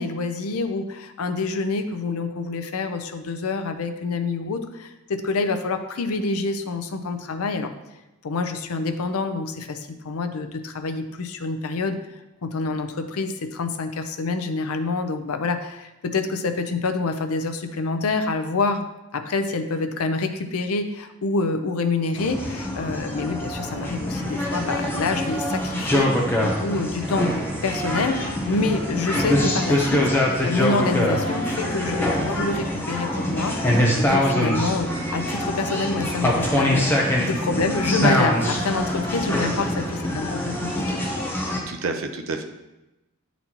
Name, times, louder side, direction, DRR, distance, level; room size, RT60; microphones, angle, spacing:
voice 1, 0.0-7.7 8.2-12.0 12.4-18.9 19.1-27.3 27.6-30.1 30.4-41.0, left 3 dB, 80° left, 8 dB, 0.6 m, -27 dB
sound 1, 22.2-41.6, left 1 dB, 10° left, 0.8 m, -24 dB
voice 2, 41.7-42.4, right 3 dB, 65° right, 5 dB, 0.6 m, -30 dB
9.1 x 4.1 x 2.9 m, 0.99 s
head